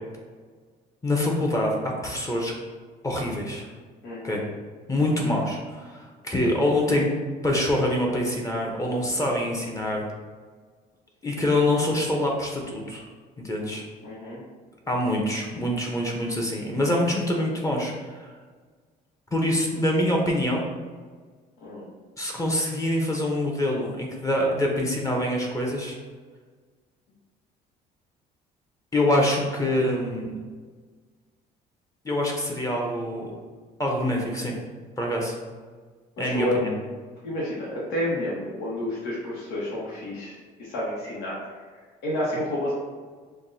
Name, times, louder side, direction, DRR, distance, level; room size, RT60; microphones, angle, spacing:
voice 1, 1.0-2.5 3.0-3.7 4.2-4.4 4.9-7.1 7.4-10.0 11.2-13.1 13.4-13.8 14.9-18.3 19.3-20.6 22.2-26.0 28.9-30.3 32.0-33.3 33.8-34.5 35.0-35.4 36.2-36.7, left 1 dB, 20° left, -1 dB, 0.7 m, -25 dB
voice 2, 4.0-4.4 14.0-14.4 21.6-21.8 36.2-36.6 37.2-41.4 42.0-42.7, left 1 dB, 90° left, -7 dB, 1.1 m, -30 dB
5.8 x 2.2 x 2.6 m, 1.5 s
cardioid pair, 110°, 17 cm